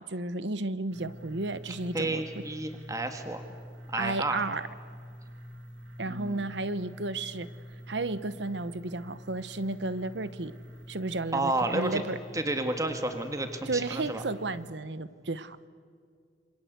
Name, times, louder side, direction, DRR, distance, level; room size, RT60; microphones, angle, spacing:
voice 1, 0.0-2.4 4.0-4.6 6.0-7.5 7.9-10.5 10.9-12.2 13.7-15.6, right 2 dB, 70° right, 15 dB, 1.1 m, -33 dB
sound 1, 0.9-14.7, equal, 85° right, 2.2 m, -47 dB
voice 2, 1.6-3.4 3.9-4.4 6.1-6.4 11.3-12.0 12.3-14.2, right 2 dB, 20° right, 6 dB, 1.7 m, -31 dB
28.0 x 26.0 x 8.2 m, 2.1 s
head